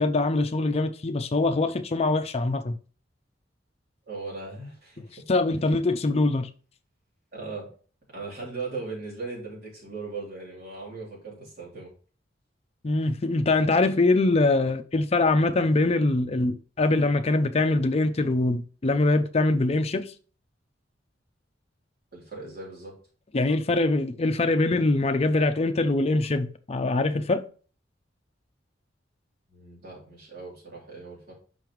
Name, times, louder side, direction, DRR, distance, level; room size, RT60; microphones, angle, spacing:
voice 1, 0.0-2.8 5.3-6.5 12.8-20.1 23.3-27.4, left 2 dB, 35° left, 0.5 m, -23 dB
voice 2, 4.1-5.2 7.3-7.7 8.1-11.9 22.1-22.9 29.5-31.3, right 3 dB, 55° right, 3.2 m, -38 dB
5.6 x 5.4 x 3.1 m
head